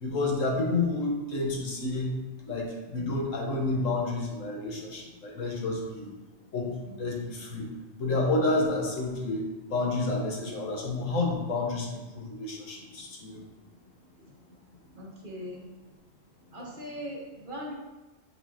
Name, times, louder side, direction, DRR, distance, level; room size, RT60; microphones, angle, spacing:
voice 1, 0.0-2.1 2.5-6.1 6.5-7.7 8.0-9.4 9.7-13.4, left 2 dB, 75° left, -1 dB, 1.7 m, -30 dB
voice 2, 14.9-15.7 16.5-17.7, equal, 40° right, -3 dB, 1.5 m, -39 dB
8.9 x 5.1 x 2.9 m, 1.2 s
omnidirectional pair, 1.3 m